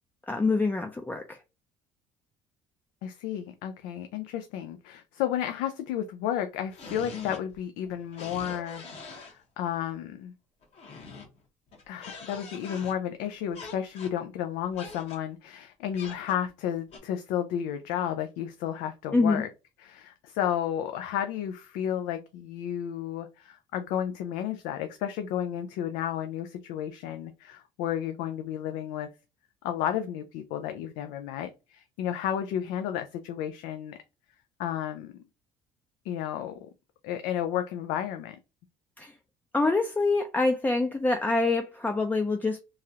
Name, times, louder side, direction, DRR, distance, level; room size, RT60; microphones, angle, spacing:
voice 1, 0.3-1.4 19.1-19.4 39.0-39.1 39.5-42.6, left 3 dB, 15° left, 0.4 m, -25 dB
voice 2, 3.0-10.3 11.9-19.5 19.8-29.1 29.6-34.0 34.6-35.1 36.0-36.6 37.0-38.4, left 10 dB, 85° left, 0.4 m, -32 dB
sound 1, 6.7-7.6 7.8-9.3 10.6-11.4 11.7-12.9 13.5-14.2 14.7-15.2 15.9-16.5 16.9-17.0, left 4 dB, 55° left, 1.2 m, -43 dB
3.1 x 2.4 x 2.7 m
cardioid pair, 100°, 13 cm